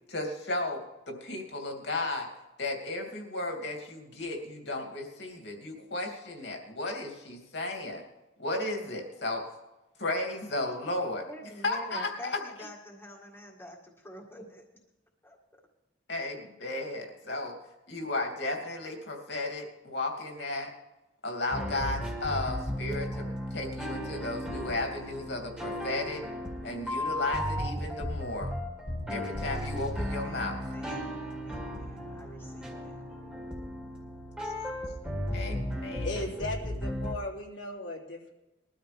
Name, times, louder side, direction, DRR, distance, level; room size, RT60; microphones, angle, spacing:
voice 1, 0.1-0.8 1.1-2.3 2.6-8.0 8.4-9.4 10.0-11.2 11.6-12.4 16.1-17.5 17.9-20.7 21.2-26.2 26.6-28.5 29.1-30.6 34.4-34.5 35.3-36.2, left 2 dB, 65° left, 2 dB, 2.8 m, -34 dB
voice 2, 10.8-14.6 15.2-15.4 30.2-31.2 31.4-33.0, equal, 10° left, -1 dB, 1.8 m, -47 dB
sound 1, 21.5-37.1, equal, 5° right, 2.0 m, -35 dB
voice 3, 36.0-38.3, left 1 dB, 85° left, -2 dB, 3.3 m, -37 dB
21.5 x 13.0 x 3.5 m, 1.0 s
head